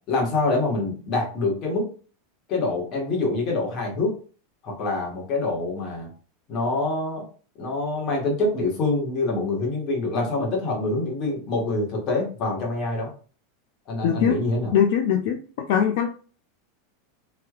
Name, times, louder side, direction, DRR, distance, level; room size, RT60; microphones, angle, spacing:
voice 1, 0.1-1.9 2.5-4.2 4.6-6.1 6.5-7.2 7.6-13.1 13.9-14.7, left 2 dB, 40° left, -1 dB, 1.5 m, -25 dB
voice 2, 14.0-14.4 14.7-15.4 15.7-16.1, left 8 dB, 65° left, 3 dB, 0.4 m, -21 dB
3.3 x 2.8 x 2.4 m, 0.39 s
supercardioid pair, 130°, 0 cm